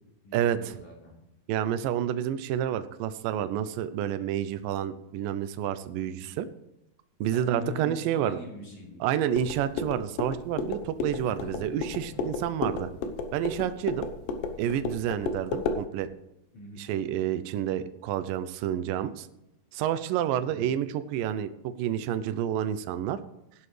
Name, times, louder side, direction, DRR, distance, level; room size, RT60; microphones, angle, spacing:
voice 1, 0.2-1.1 6.2-6.4 7.3-9.0 11.0-12.3 16.5-16.8 20.4-20.6, left 1 dB, 45° left, -4 dB, 5.3 m, -43 dB
voice 2, 1.5-6.5 7.2-8.4 9.0-12.9 13.3-14.1 14.6-16.1 16.8-19.3 19.7-23.2, right 10 dB, 90° right, 11 dB, 1.9 m, -29 dB
sound 1, 9.3-15.8, left 4 dB, 85° left, 3.2 m, -33 dB
15.5 x 11.0 x 3.3 m, 0.86 s
omnidirectional pair, 4.8 m